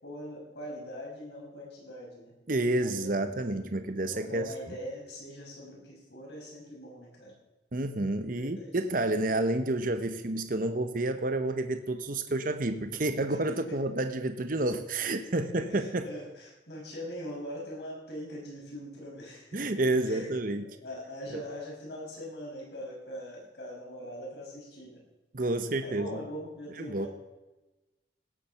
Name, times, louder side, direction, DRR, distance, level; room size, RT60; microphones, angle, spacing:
voice 1, 0.0-2.3 2.7-3.1 4.0-7.3 8.4-8.7 13.3-13.4 13.7-13.8 15.4-25.0 25.8-27.1, equal, 65° left, -2 dB, 6.0 m, -42 dB
voice 2, 2.5-4.5 7.7-16.1 19.5-20.6 25.3-26.2 26.8-27.1, right 2 dB, 45° right, 9 dB, 0.9 m, -29 dB
17.0 x 7.5 x 7.0 m, 1.1 s
head